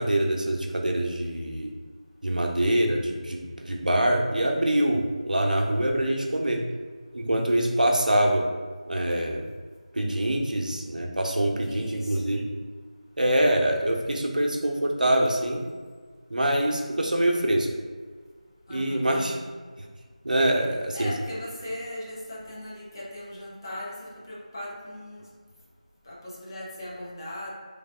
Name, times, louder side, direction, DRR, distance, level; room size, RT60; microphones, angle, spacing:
voice 1, 0.0-1.7 2.2-6.6 7.1-8.4 8.9-9.4 9.9-12.5 13.2-15.6 16.3-17.7 18.7-19.3 20.2-21.1, right 1 dB, 90° right, 1 dB, 0.7 m, -24 dB
voice 2, 11.7-12.2 18.7-19.6 20.9-25.3 26.0-27.5, left 1 dB, 30° left, -5 dB, 0.7 m, -39 dB
3.3 x 2.3 x 3.6 m, 1.5 s
figure-of-eight pair, 170°, 4 cm